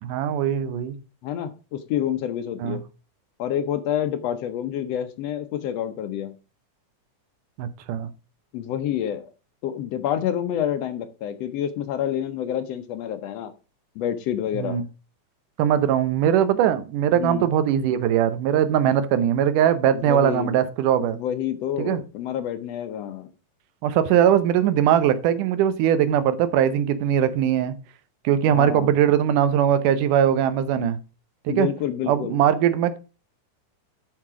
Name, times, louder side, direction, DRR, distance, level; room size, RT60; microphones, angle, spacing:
voice 1, 0.0-1.0 2.6-2.8 7.6-8.1 14.5-14.8 15.6-21.2 21.8-22.0 23.8-27.7 28.2-31.0 31.5-31.7 32.1-33.0, right 10 dB, 85° right, 2.4 m, -21 dB
voice 2, 1.2-2.8 3.4-6.4 8.5-9.3 9.6-13.5 13.9-14.8 17.1-17.5 19.9-20.6 21.0-23.3 28.5-28.9 31.5-32.4, left 10 dB, 70° left, 1.6 m, -28 dB
7.4 x 5.9 x 4.8 m
omnidirectional pair, 3.6 m